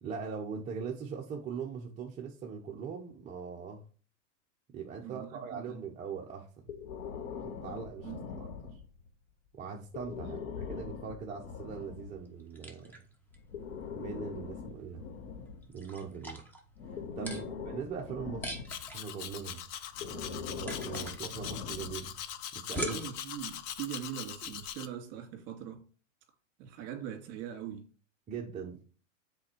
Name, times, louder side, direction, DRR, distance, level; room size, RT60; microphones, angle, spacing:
voice 1, 0.0-3.8 4.7-6.6 7.4-8.1 8.4-8.5 9.5-13.0 13.9-15.0 15.7-16.4 16.9-18.6 18.9-19.6 20.0-22.1 22.5-23.0 28.3-28.8, right 6 dB, 20° right, 0.7 m, -41 dB
voice 2, 5.0-5.8 8.0-8.3 17.2-17.5 22.8-25.8 26.6-27.8, right 10 dB, 40° right, 2.3 m, -42 dB
Breathing, 6.7-9.1 9.9-12.2 13.3-16.2 16.8-19.0 19.9-22.2, left 6 dB, 70° left, 1.4 m, -42 dB
sound 1, 11.8-24.7, right 1 dB, 5° left, 1.0 m, -45 dB
Domestic sounds home sounds, 18.7-24.9, left 10 dB, 30° left, 0.4 m, -42 dB
7.6 x 4.3 x 4.5 m
supercardioid pair, 140°, 39 cm